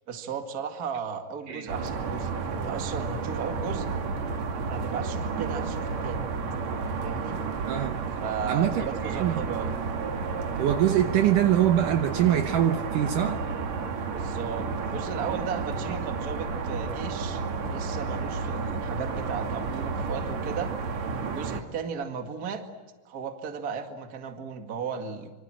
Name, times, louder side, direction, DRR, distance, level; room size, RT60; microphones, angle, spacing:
voice 1, 0.1-3.9 4.5-6.2 7.0-7.4 8.2-9.8 14.0-17.4 17.7-20.7 21.3-22.6 23.1-25.3, right 6 dB, 35° right, 5 dB, 1.8 m, -35 dB
sound 1, 1.7-21.6, right 4 dB, 50° right, 2.8 m, -31 dB
voice 2, 7.7-8.0 8.5-8.9 9.1-9.4 10.6-13.4, right 11 dB, 70° right, 6 dB, 2.3 m, -24 dB
26.5 x 25.0 x 7.6 m, 1.3 s
omnidirectional pair, 4.4 m